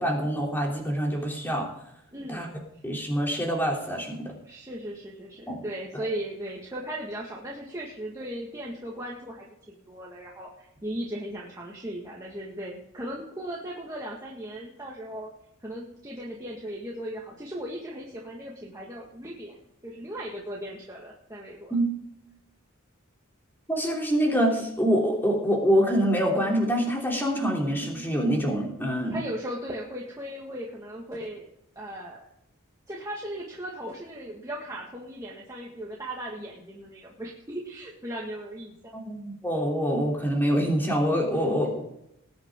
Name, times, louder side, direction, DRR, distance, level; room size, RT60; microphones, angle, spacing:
voice 1, 0.0-1.7 2.3-2.5 2.8-4.3 5.5-5.6 5.9-6.0 21.7-21.9 23.7-29.2 38.9-41.8, equal, 10° left, -1 dB, 3.2 m, -25 dB
voice 2, 2.1-2.5 4.4-15.3 15.6-19.6 19.8-21.8 29.1-31.5 31.8-32.2 32.9-39.0 41.4-41.5, right 1 dB, 15° right, -3 dB, 1.8 m, -37 dB
20.0 x 8.5 x 3.7 m, 0.78 s
head